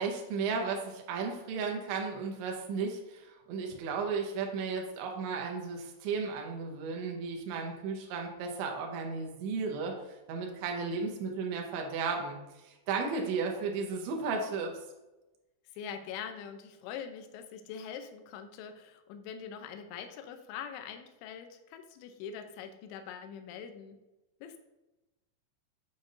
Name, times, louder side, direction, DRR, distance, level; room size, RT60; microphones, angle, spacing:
voice 1, 0.0-9.9 10.3-12.4 12.6-14.7, right 5 dB, 75° right, 1 dB, 3.2 m, -34 dB
voice 2, 15.7-24.0 24.4-24.6, left 7 dB, 80° left, 7 dB, 2.9 m, -43 dB
9.1 x 5.3 x 2.6 m, 1.0 s
omnidirectional pair, 5.7 m